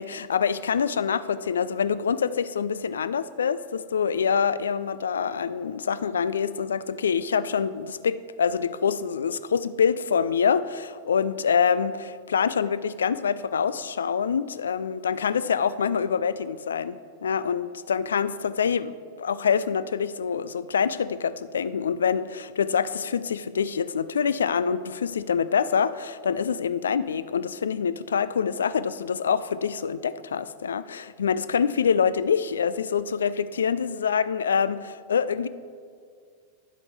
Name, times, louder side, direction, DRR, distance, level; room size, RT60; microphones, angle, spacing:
voice 1, 0.0-35.5, left 6 dB, 70° left, 16 dB, 0.3 m, -25 dB
10.0 x 7.8 x 4.4 m, 2.1 s
figure-of-eight pair, 90°, 0 cm